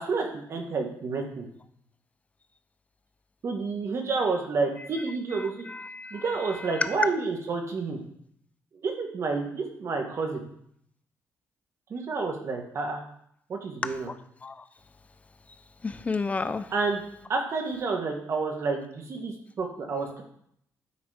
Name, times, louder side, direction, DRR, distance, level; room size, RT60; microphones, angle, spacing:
voice 1, 0.0-1.5 3.4-5.7 6.1-8.0 8.7-10.4 11.9-13.0 13.5-14.1 16.7-17.0 17.3-20.2, right 4 dB, 55° right, 3 dB, 1.7 m, -29 dB
voice 2, 5.7-6.2 13.8-14.1 14.4-14.6 15.8-16.7, left 4 dB, 25° left, 11 dB, 0.6 m, -32 dB
9.6 x 4.1 x 5.1 m, 0.69 s
cardioid pair, 100°, 6 cm